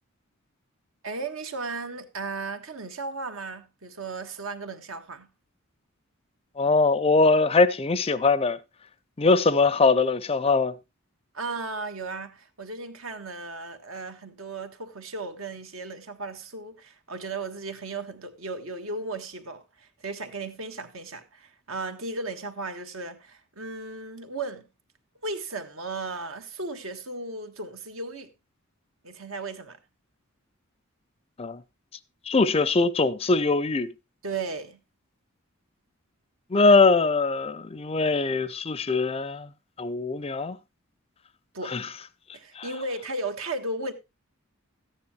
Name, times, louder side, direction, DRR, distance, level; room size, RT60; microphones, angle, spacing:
voice 1, 1.0-5.3 11.3-24.7 25.2-28.3 29.0-29.8 34.2-34.8 41.5-41.8 42.3-43.9, right 3 dB, 75° right, 1.5 m, -35 dB
voice 2, 6.6-8.6 9.2-10.7 31.4-31.6 32.3-33.9 36.5-39.5 39.8-40.6 41.7-41.9 42.6-42.7, left 3 dB, 30° left, 0.5 m, -22 dB
13.5 x 9.7 x 3.0 m
head